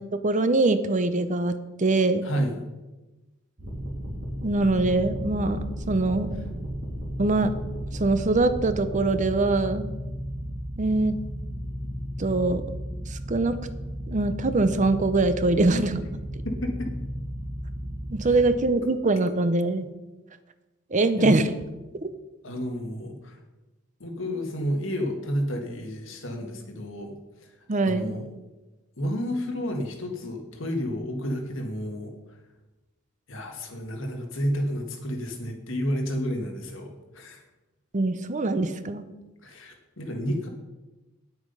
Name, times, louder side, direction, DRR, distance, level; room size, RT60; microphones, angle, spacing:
voice 1, 0.2-2.2 4.4-6.4 7.2-7.5 7.9-9.9 10.8-11.2 12.2-12.6 13.1-13.6 14.1-16.0 18.1-19.9 20.9-21.5 22.0-22.1 27.7-28.1 37.9-39.0, right 2 dB, 40° right, 11 dB, 0.7 m, -23 dB
voice 2, 2.2-2.6 16.4-16.9 18.2-18.4 21.2-21.4 22.4-23.4 24.0-27.1 27.4-27.5 27.8-28.3 29.0-32.4 33.3-37.4 39.4-40.5, equal, 70° left, 3 dB, 1.9 m, -31 dB
sound 1, 3.6-18.5, equal, 65° right, 3.6 m, -34 dB
9.6 x 8.0 x 5.5 m, 1.1 s
head